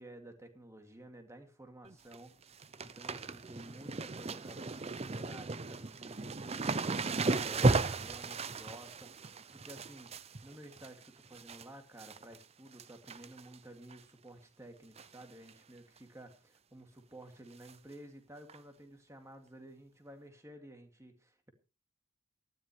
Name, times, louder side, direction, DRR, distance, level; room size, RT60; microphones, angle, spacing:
voice 1, 0.0-2.3 2.8-10.1 10.4-21.5, right 1 dB, 15° right, 5 dB, 2.3 m, -53 dB
sound 1, 1.8-2.2 2.4-11.6 12.0-12.4 12.7-13.6 13.9-14.0 15.0-15.2 15.5-15.6 16.0-16.1 17.6-17.7 18.5-18.6, right 3 dB, 30° right, 0.6 m, -35 dB
18.5 x 13.5 x 3.2 m, 0.32 s
head